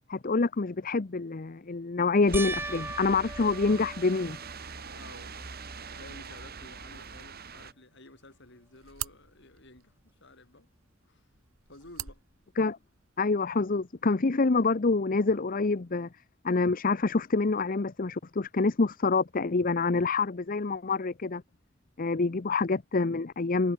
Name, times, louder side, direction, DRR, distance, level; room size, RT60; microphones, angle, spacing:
voice 1, 0.1-4.4 12.6-12.8 13.2-16.1 16.4-21.4 22.0-23.7, left 3 dB, 40° left, 0.7 m, -26 dB
sound 1, 2.3-4.9 5.5-6.1 6.5-6.6 9.8-9.9, right 2 dB, 10° right, 3.5 m, -39 dB
sound 2, 2.3-7.7, right 5 dB, 45° right, 2.8 m, -43 dB
voice 2, 4.9-5.5 5.9-10.7 11.0-11.3 11.7-12.2 22.3-22.4, left 2 dB, 55° left, 6.3 m, -53 dB
sound 3, 8.2-13.2, right 12 dB, 90° right, 7.0 m, -45 dB
head